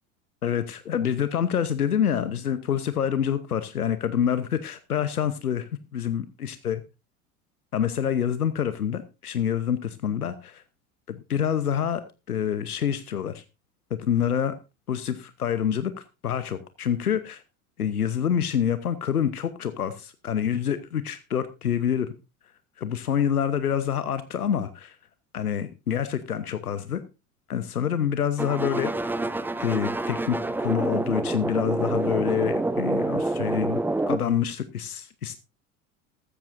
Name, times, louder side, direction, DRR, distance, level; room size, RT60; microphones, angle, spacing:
voice 1, 0.4-6.8 7.7-10.6 11.1-13.4 13.9-14.5 14.9-17.4 17.8-22.1 22.8-25.0 25.3-27.0 27.5-29.1 29.6-33.8 34.1-35.4, left 9 dB, 80° left, 13 dB, 1.0 m, -27 dB
sound 1, 28.4-34.2, right 2 dB, 5° right, 0.7 m, -27 dB
15.0 x 13.0 x 2.6 m, 0.27 s
figure-of-eight pair, 75°, 44 cm